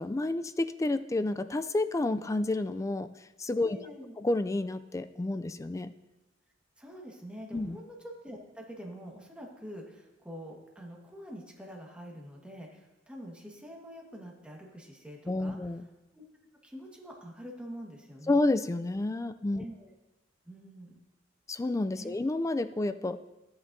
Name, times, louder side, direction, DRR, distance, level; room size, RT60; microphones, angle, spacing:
voice 1, 0.0-3.8 4.2-5.9 7.5-7.8 15.3-15.8 18.3-19.6 21.5-23.2, left 2 dB, 15° left, 12 dB, 0.3 m, -30 dB
voice 2, 3.6-4.1 6.8-15.6 16.1-16.2 16.6-18.4 19.5-19.9 20.4-21.0 21.9-22.2, equal, 5° right, -1 dB, 1.5 m, -46 dB
13.5 x 8.7 x 2.7 m, 1.0 s
head